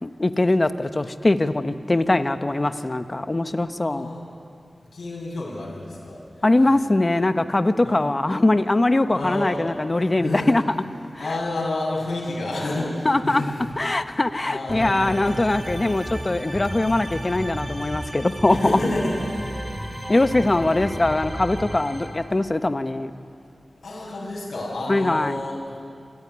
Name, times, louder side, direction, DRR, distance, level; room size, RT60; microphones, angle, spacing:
voice 1, 0.0-4.1 6.4-10.6 13.0-13.4 13.8-18.6 20.1-23.1 24.9-25.4, left 2 dB, 35° left, 9 dB, 1.2 m, -21 dB
voice 2, 3.8-4.2 4.9-6.7 7.8-8.1 9.1-10.5 11.2-13.7 14.4-15.4 18.5-19.6 20.7-21.1 23.8-25.8, left 2 dB, 80° left, -5 dB, 6.6 m, -30 dB
sound 1, 14.7-22.1, equal, 20° right, 4.5 m, -33 dB
26.5 x 15.0 x 9.9 m, 2.4 s
cardioid pair, 50°, 0 cm